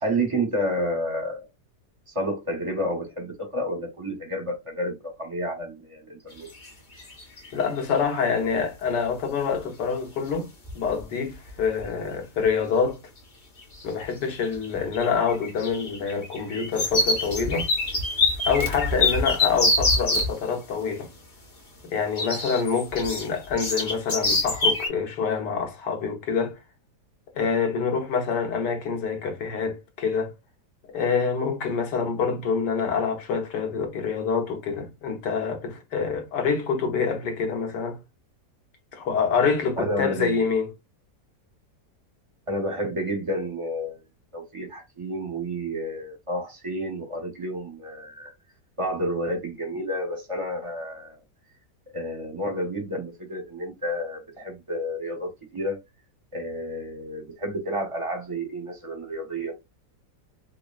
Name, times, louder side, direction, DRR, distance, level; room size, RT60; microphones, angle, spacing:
voice 1, 0.0-1.5 2.1-6.5 39.8-40.3 42.5-44.0 44.3-48.3 48.8-51.2 51.9-55.8 56.3-59.5, equal, 30° right, 0.6 m, -30 dB
sound 1, 6.5-6.7 7.0-7.6 9.6-9.7 10.3-10.4 10.6-11.0 11.3-11.9 12.4-12.5 13.6-14.0 14.3-20.3 22.2-24.9, left 2 dB, 35° left, 1.0 m, -25 dB
voice 2, 7.5-13.0 13.8-17.7 18.4-21.1 21.9-26.6 27.3-30.3 30.9-38.0 38.9-40.7, left 5 dB, 85° left, 1.6 m, -26 dB
5.0 x 2.3 x 2.4 m
omnidirectional pair, 1.8 m